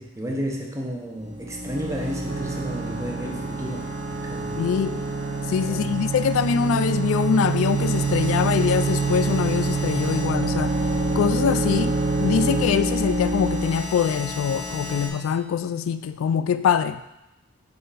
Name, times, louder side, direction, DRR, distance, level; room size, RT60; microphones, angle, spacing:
voice 1, 0.0-4.6 5.7-6.1, equal, 15° right, 0 dB, 0.7 m, -32 dB
sound 1, 1.2-15.1, equal, 30° right, 1.1 m, -29 dB
sound 2, 2.2-12.6, right 6 dB, 65° right, 0.9 m, -27 dB
voice 2, 4.6-5.0 5.5-10.8 11.1-17.0, left 7 dB, 85° left, 12 dB, 0.3 m, -23 dB
4.9 x 3.8 x 5.5 m, 0.90 s
head